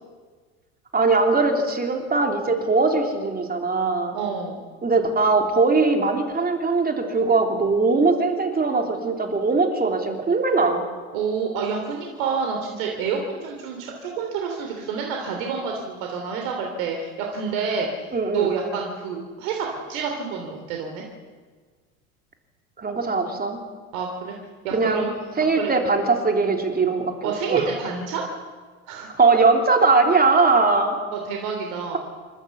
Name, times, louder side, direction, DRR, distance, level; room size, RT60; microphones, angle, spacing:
voice 1, 0.9-4.1 4.8-10.8 18.1-18.5 22.8-23.6 24.7-27.6 29.1-30.9, right 3 dB, 20° right, 3 dB, 3.3 m, -20 dB
voice 2, 4.1-4.6 11.1-17.9 18.3-21.0 23.9-24.4 24.6-25.8 27.2-28.3 28.9-29.1 31.1-32.0, right 6 dB, 70° right, 2 dB, 3.1 m, -28 dB
29.0 x 12.5 x 7.1 m, 1.5 s
hypercardioid pair, 85°, 42 cm